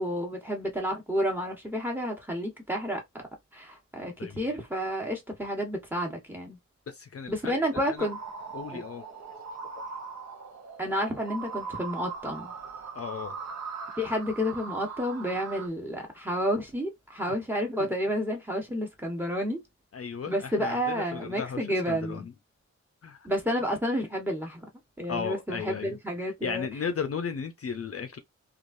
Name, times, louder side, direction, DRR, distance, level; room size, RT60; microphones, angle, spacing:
voice 1, 0.0-3.0 3.5-6.6 7.3-8.2 8.7-8.8 10.8-12.5 14.0-19.6 20.3-22.3 23.2-24.6 25.0-26.7, equal, 5° right, 1.0 m, -30 dB
voice 2, 6.9-7.6 7.9-8.1 8.5-9.1 9.6-9.7 12.9-13.4 19.9-22.3 23.0-23.3 25.1-28.2, left 6 dB, 50° left, 0.5 m, -35 dB
sound 1, 8.0-15.7, right 5 dB, 65° right, 0.8 m, -40 dB
3.1 x 2.4 x 2.5 m
wide cardioid pair, 90°, 29 cm